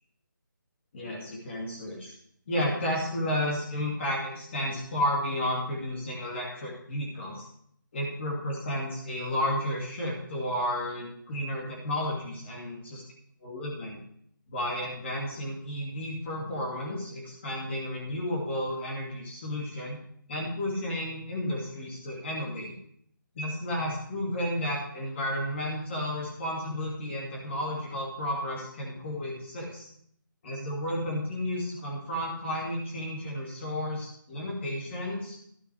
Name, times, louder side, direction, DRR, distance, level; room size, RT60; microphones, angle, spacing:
voice 1, 0.9-2.1 2.5-7.5 7.9-13.0 13.4-14.0 14.5-20.0 20.3-22.7 23.3-29.9 30.4-35.4, left 1 dB, 35° left, -4 dB, 2.6 m, -32 dB
12.0 x 7.7 x 4.7 m, 0.68 s
figure-of-eight pair, 165°, 11 cm